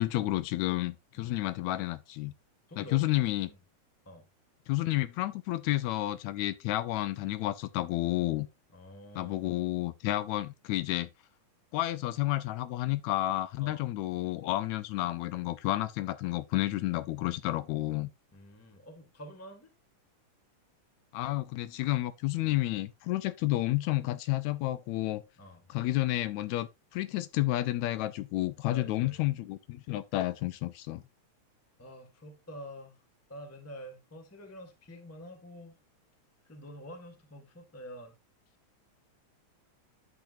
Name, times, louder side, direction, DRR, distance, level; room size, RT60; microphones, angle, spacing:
voice 1, 0.0-2.3 2.8-3.5 4.7-8.5 9.2-11.1 11.7-18.1 21.1-25.2 25.7-31.0, left 16 dB, 80° left, 1.8 m, -31 dB
voice 2, 2.7-3.6 4.0-4.3 8.7-9.5 13.6-13.8 18.3-19.7 22.4-22.6 25.4-25.6 28.7-29.2 31.8-33.0 33.3-35.7 36.5-38.1, equal, 10° left, 0.6 m, -48 dB
10.5 x 6.7 x 2.5 m
omnidirectional pair, 3.4 m